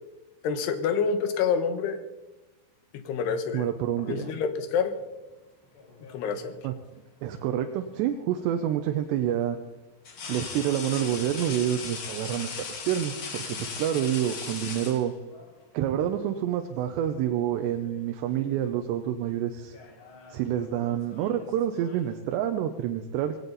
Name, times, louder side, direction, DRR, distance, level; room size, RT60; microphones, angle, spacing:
voice 1, 0.4-2.0 3.1-3.7 4.1-4.9 6.1-6.6, left 6 dB, 75° left, 9 dB, 3.3 m, -27 dB
voice 2, 3.5-4.3 6.6-6.7 7.2-9.6 10.3-12.5 12.9-15.1 15.7-19.8 20.3-23.4, right 10 dB, 85° right, 6 dB, 3.0 m, -28 dB
sound 1, 5.7-6.6 8.4-8.5 10.0-15.5 16.7-16.9 17.3-18.1 18.3-18.7 19.6-22.2, left 5 dB, 50° left, 1.6 m, -39 dB
18.5 x 17.0 x 4.1 m, 1.0 s
omnidirectional pair, 4.9 m